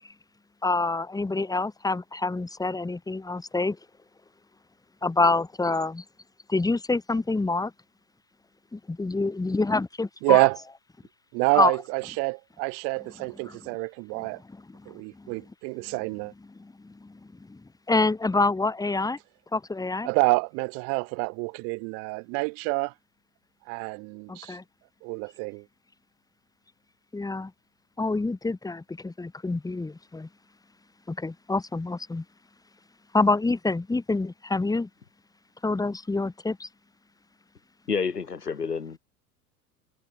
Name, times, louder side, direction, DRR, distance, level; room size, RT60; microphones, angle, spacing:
voice 1, 0.6-3.8 5.0-6.0 6.5-7.7 8.7-10.5 11.6-11.7 13.4-13.6 14.7-15.5 15.9-16.0 16.6-17.2 17.5-17.6 17.9-19.2 19.5-20.1 24.3-24.6 27.1-27.5 28.0-30.3 31.1-32.2 33.1-34.9 35.6-36.7, left 3 dB, 10° left, 2.6 m, -27 dB
voice 2, 10.2-10.6 11.3-14.4 14.9-16.3 20.0-22.9 23.7-24.6 25.0-25.6, right 33 dB, 35° right, 0.5 m, -27 dB
voice 3, 37.9-39.0, left 5 dB, 85° left, 3.4 m, -29 dB
figure-of-eight pair, 85°, 46 cm